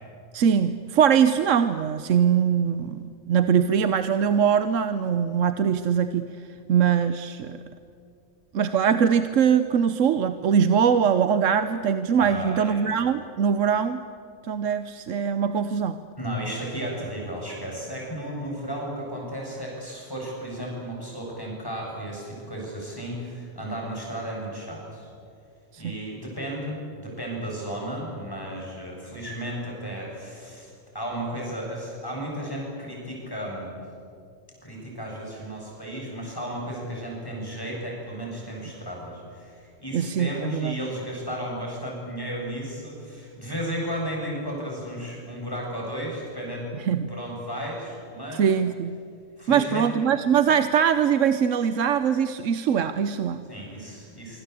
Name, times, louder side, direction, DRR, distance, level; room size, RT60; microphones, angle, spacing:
voice 1, 0.3-6.3 6.7-7.6 8.5-14.0 14.5-16.0 25.7-26.0 39.9-40.8 46.8-47.1 48.3-48.9 49.5-53.4, right 7 dB, 65° right, 11 dB, 1.1 m, -22 dB
voice 2, 12.1-12.8 16.2-25.1 25.8-33.7 34.6-46.7 47.1-48.5 49.4-49.8 53.5-54.4, equal, 15° left, -2 dB, 8.1 m, -34 dB
25.5 x 25.0 x 8.5 m, 2.5 s
omnidirectional pair, 1.4 m